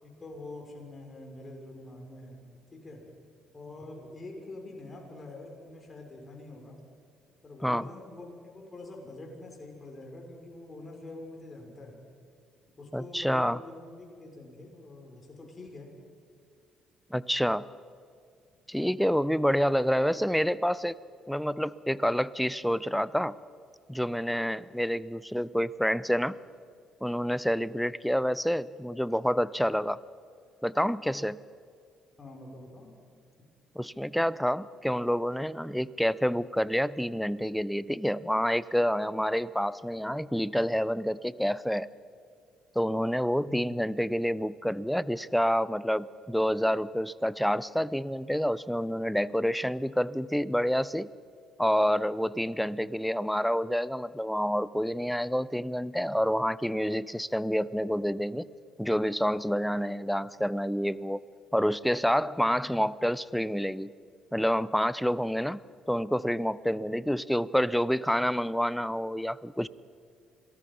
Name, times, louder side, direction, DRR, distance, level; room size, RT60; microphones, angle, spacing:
voice 1, 0.0-2.4 2.7-3.0 3.5-6.8 7.4-12.0 12.8-15.9 32.2-32.9 43.5-43.7 66.7-66.8, left 2 dB, 35° left, 1 dB, 6.2 m, -45 dB
voice 2, 12.9-13.6 17.1-17.7 18.7-21.0 21.3-23.4 23.9-26.4 27.0-30.0 30.6-31.4 33.8-41.9 42.8-51.1 51.6-58.5 58.8-61.2 61.5-63.9 64.3-65.6 65.9-69.7, equal, ahead, 19 dB, 0.7 m, -28 dB
26.5 x 18.5 x 5.6 m, 2.2 s
hypercardioid pair, 50°, 0 cm